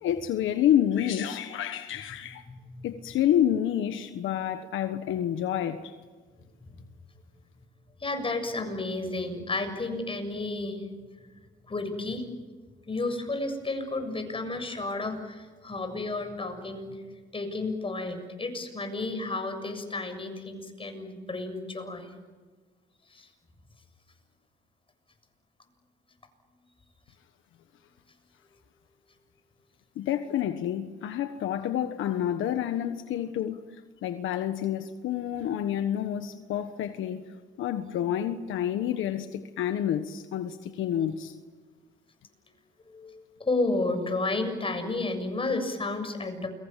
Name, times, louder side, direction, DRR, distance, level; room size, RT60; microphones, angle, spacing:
voice 1, 0.0-2.4 2.8-5.9 30.0-33.6 34.0-37.2 37.6-41.3, left 10 dB, 80° left, 1.4 m, -28 dB
voice 2, 2.5-2.9 6.6-6.8 8.0-10.9 11.7-12.2 12.9-17.0 17.3-22.1 23.1-23.3 42.8-46.5, left 2 dB, 25° left, 7.2 m, -32 dB
29.0 x 24.0 x 7.6 m
cardioid pair, 90°, 20 cm